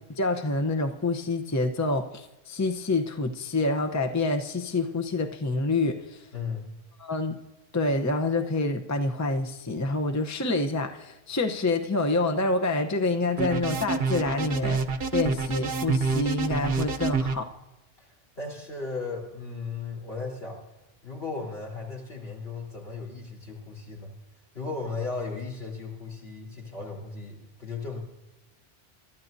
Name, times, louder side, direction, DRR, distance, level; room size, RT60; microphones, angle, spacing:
voice 1, 0.1-6.2 7.0-7.4 7.7-14.8 15.1-17.5, left 2 dB, 20° left, 5 dB, 0.7 m, -27 dB
voice 2, 6.3-6.7 18.0-20.6 21.0-24.1 24.5-28.0, left 4 dB, 75° left, -3 dB, 4.1 m, -36 dB
sound 1, 13.4-17.3, right 4 dB, 65° right, 1.0 m, -27 dB
24.0 x 12.5 x 2.7 m, 1.0 s
omnidirectional pair, 1.1 m